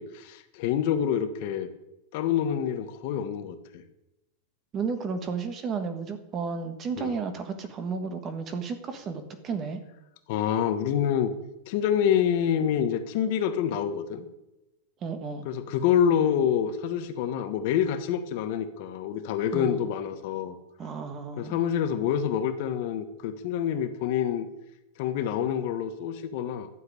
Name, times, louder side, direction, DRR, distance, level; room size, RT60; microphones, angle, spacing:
voice 1, 0.0-1.7 2.1-3.8 7.0-7.1 10.3-11.3 11.7-14.3 15.4-20.6 21.4-24.5 25.0-26.7, left 9 dB, 45° left, 9 dB, 1.4 m, -27 dB
voice 2, 4.7-9.8 15.0-15.4 19.5-19.8 20.8-21.7, right 5 dB, 20° right, 9 dB, 1.4 m, -33 dB
12.5 x 7.8 x 9.9 m, 0.91 s
supercardioid pair, 175°, 0 cm